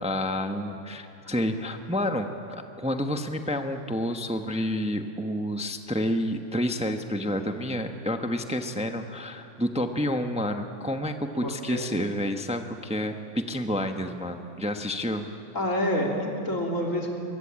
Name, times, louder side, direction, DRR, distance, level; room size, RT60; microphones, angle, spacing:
voice 1, 0.0-15.2, equal, 5° right, 6 dB, 0.9 m, -29 dB
voice 2, 11.4-11.9 15.5-17.1, equal, 75° left, 0 dB, 3.7 m, -28 dB
23.5 x 22.5 x 8.8 m, 2.7 s
omnidirectional pair, 1.4 m